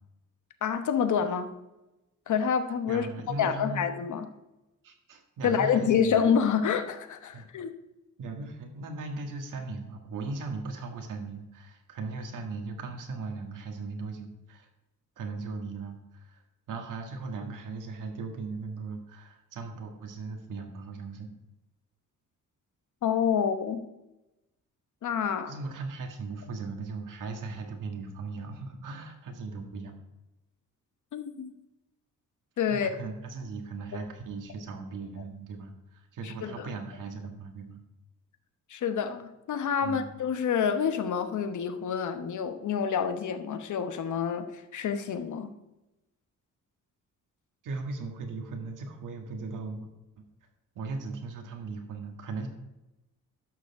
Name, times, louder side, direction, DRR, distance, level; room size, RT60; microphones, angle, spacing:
voice 1, 0.6-1.5 2.3-3.1 3.4-4.3 5.4-7.7 23.0-23.9 25.0-25.5 31.1-31.5 32.6-32.9 36.2-36.7 38.7-45.5, left 7 dB, 70° left, 9 dB, 1.1 m, -28 dB
voice 2, 2.9-3.8 4.8-6.2 7.3-7.4 8.2-14.7 15.2-16.4 16.7-21.3 25.5-29.9 32.7-37.8 39.8-40.1 47.6-49.9 50.2-50.3 50.7-52.5, right 3 dB, 80° right, 4 dB, 1.8 m, -38 dB
11.5 x 6.6 x 4.8 m, 0.98 s
cardioid pair, 105°, 31 cm